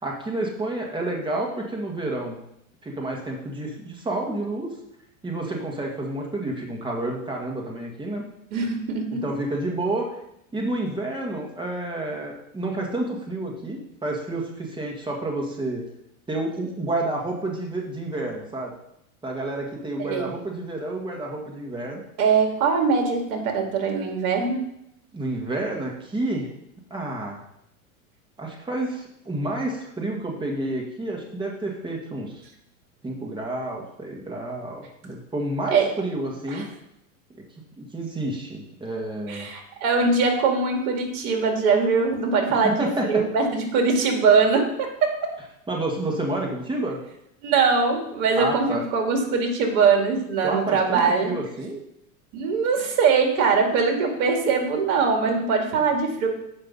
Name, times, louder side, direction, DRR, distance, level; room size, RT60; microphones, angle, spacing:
voice 1, 0.0-2.4 2.8-4.7 5.2-8.2 9.2-10.1 10.5-15.8 16.3-18.7 19.2-22.0 25.1-26.5 26.9-27.4 28.4-32.4 33.0-36.7 37.8-39.5 42.5-43.2 45.7-47.0 48.4-48.8 50.4-51.8, right 2 dB, 10° right, -1 dB, 1.8 m, -29 dB
voice 2, 8.5-9.2 20.0-20.2 22.2-24.6 35.7-35.9 36.5-36.6 39.3-45.3 47.4-51.3 52.3-56.3, right 5 dB, 60° right, 3 dB, 2.4 m, -22 dB
7.9 x 5.7 x 5.4 m, 0.78 s
hypercardioid pair, 115°, 44 cm